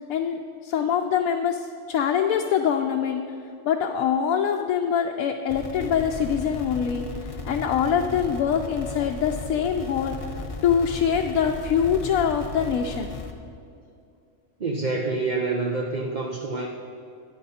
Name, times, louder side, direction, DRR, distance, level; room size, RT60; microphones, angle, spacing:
voice 1, 0.0-3.2 3.6-10.2 10.6-13.1, left 8 dB, 80° left, 3 dB, 1.0 m, -24 dB
sound 1, 5.5-13.3, left 3 dB, 30° left, 0.8 m, -36 dB
voice 2, 14.6-16.7, right 3 dB, 45° right, 0 dB, 0.6 m, -27 dB
13.5 x 10.0 x 4.2 m, 2.4 s
omnidirectional pair, 1.5 m